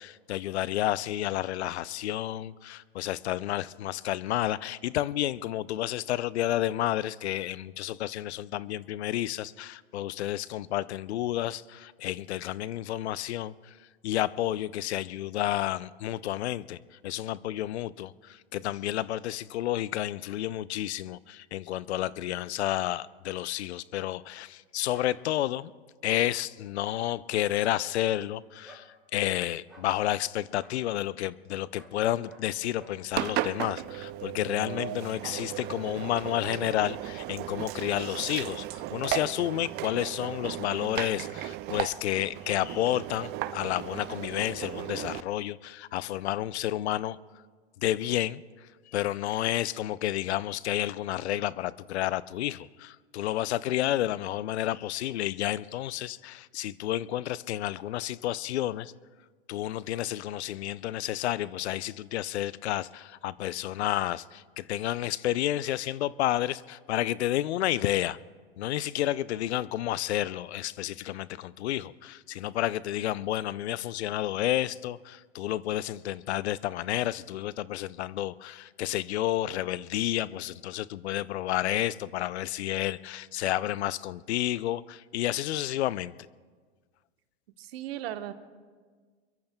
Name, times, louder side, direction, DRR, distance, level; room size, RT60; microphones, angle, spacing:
voice 1, 0.0-13.7 14.0-16.8 17.0-25.7 26.0-47.2 47.8-48.4 48.9-58.9 59.5-68.2 68.6-86.1, left 13 dB, 80° left, 0.5 m, -30 dB
sound 1, 24.9-25.1 26.0-26.3 27.3-27.6 28.6-28.9 29.7-29.9 30.6-30.8 31.7-32.0 32.2-32.5 32.7-33.0, right 1 dB, ahead, 5.0 m, -51 dB
Engine, 33.1-45.2, right 14 dB, 30° right, 0.5 m, -36 dB
voice 2, 87.6-88.3, right 12 dB, 65° right, 1.2 m, -36 dB
25.5 x 22.5 x 2.2 m
hypercardioid pair, 115°, 33 cm